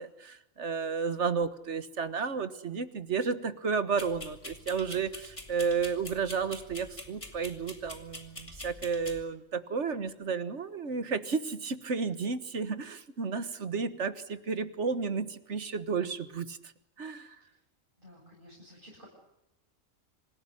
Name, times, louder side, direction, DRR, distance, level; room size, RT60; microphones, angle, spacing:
voice 1, 0.0-16.7 17.0-17.4, right 5 dB, 60° right, 12 dB, 1.7 m, -32 dB
sound 1, 4.0-9.2, left 1 dB, 25° left, 2.8 m, -45 dB
voice 2, 18.0-19.1, equal, 40° right, -4 dB, 8.3 m, -54 dB
26.0 x 16.5 x 9.9 m, 0.93 s
omnidirectional pair, 1.4 m